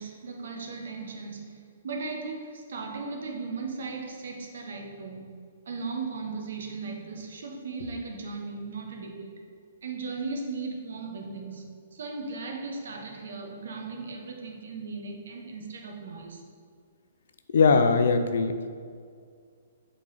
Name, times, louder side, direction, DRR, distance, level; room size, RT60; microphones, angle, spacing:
voice 1, 0.0-5.3 5.6-9.4 9.8-16.4, right 4 dB, 70° right, 2 dB, 1.1 m, -37 dB
voice 2, 17.5-18.7, left 4 dB, 70° left, 7 dB, 0.5 m, -21 dB
7.3 x 4.0 x 4.0 m, 2.2 s
hypercardioid pair, 130°, 0 cm